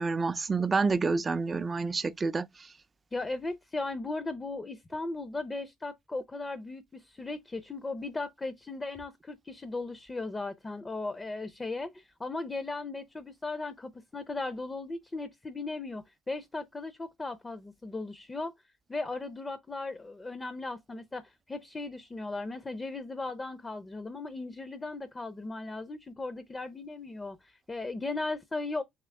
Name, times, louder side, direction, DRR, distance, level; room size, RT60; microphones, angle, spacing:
voice 1, 0.0-2.5, right 4 dB, 30° right, 0.4 m, -28 dB
voice 2, 3.1-18.5 18.9-28.8, left 3 dB, 25° left, 0.5 m, -37 dB
3.6 x 3.0 x 3.3 m
supercardioid pair, 70°, 0 cm